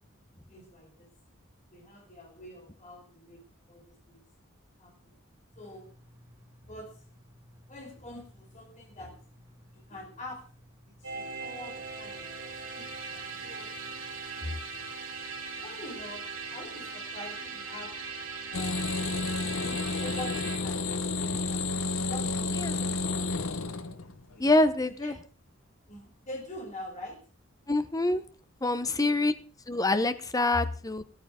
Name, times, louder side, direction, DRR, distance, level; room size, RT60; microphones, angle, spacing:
voice 1, 0.5-1.1 1.7-4.2 4.8-4.9 5.6-5.9 6.6-7.0 7.7-9.2 9.7-10.4 10.8-13.9 14.3-14.9 15.5-16.2 16.5-17.9 18.5-19.1 19.5-21.6 22.1-23.4 24.3-24.5 24.8-25.1 25.9-27.3 28.8-29.3 30.5-30.6, left 1 dB, 35° left, 1 dB, 4.6 m, -44 dB
sound 1, 5.5-14.9, equal, 15° right, 1.5 m, -58 dB
sound 2, 11.0-20.6, right 4 dB, 75° right, 3.6 m, -39 dB
sound 3, 18.5-24.4 24.6-24.8, left 3 dB, 75° left, 1.0 m, -31 dB
voice 2, 24.4-25.1 27.7-28.2 28.6-29.3 29.7-31.0, left 2 dB, 15° left, 11 dB, 0.8 m, -25 dB
15.0 x 13.5 x 3.7 m, 0.39 s
head